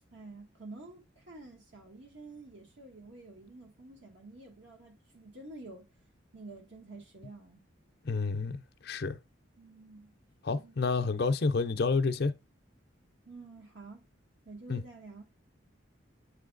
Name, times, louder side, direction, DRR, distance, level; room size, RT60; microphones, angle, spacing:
voice 1, 0.1-5.9 6.3-7.6 9.6-10.2 10.5-10.8 13.3-14.1 14.4-15.3, right 2 dB, 65° right, 1.4 m, -49 dB
voice 2, 8.0-9.2 10.4-12.3 14.7-14.8, left 4 dB, 50° left, 0.5 m, -29 dB
8.0 x 3.2 x 3.8 m
head